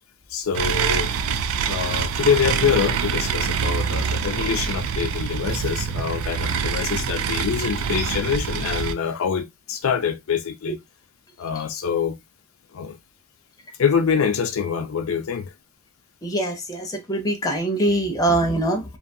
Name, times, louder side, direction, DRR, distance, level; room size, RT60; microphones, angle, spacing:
voice 1, 0.3-1.4 1.7-10.8 11.4-12.2 12.7-13.0 13.8-15.5, left 7 dB, 70° left, 0.4 m, -25 dB
sound 1, 0.5-8.9, right 6 dB, 75° right, 0.3 m, -25 dB
voice 2, 16.2-19.0, right 1 dB, 15° left, 0.5 m, -23 dB
2.7 x 2.3 x 2.6 m
head